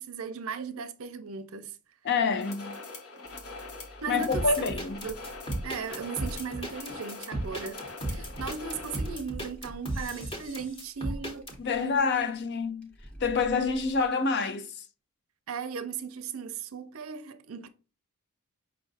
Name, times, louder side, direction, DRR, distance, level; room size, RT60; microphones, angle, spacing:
voice 1, 0.0-1.8 4.0-4.7 5.0-5.2 5.6-11.5 15.5-17.7, right 6 dB, 70° right, 0.5 m, -37 dB
voice 2, 2.0-2.8 4.1-5.1 8.1-8.3 11.6-12.9 13.2-14.7, left 4 dB, 50° left, 0.5 m, -27 dB
sound 1, 2.3-9.2, left 3 dB, 75° left, 1.2 m, -43 dB
sound 2, 3.2-14.1, equal, 5° left, 0.6 m, -50 dB
sound 3, 4.3-11.5, right 1 dB, 25° left, 1.1 m, -35 dB
5.5 x 2.5 x 3.9 m
head